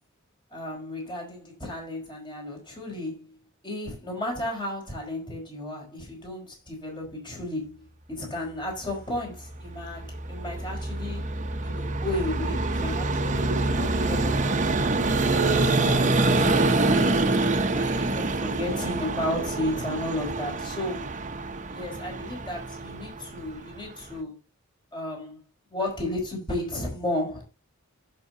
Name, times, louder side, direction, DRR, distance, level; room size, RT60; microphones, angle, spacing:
voice 1, 0.5-3.3 3.6-11.3 11.6-14.6 15.1-17.2 17.7-21.1 21.7-24.4 24.9-25.4 25.7-27.4, left 1 dB, 20° left, 4.9 m, -34 dB
Vehicle, 9.5-24.1, right 2 dB, 35° right, 1.1 m, -26 dB
15.0 x 6.2 x 2.7 m
head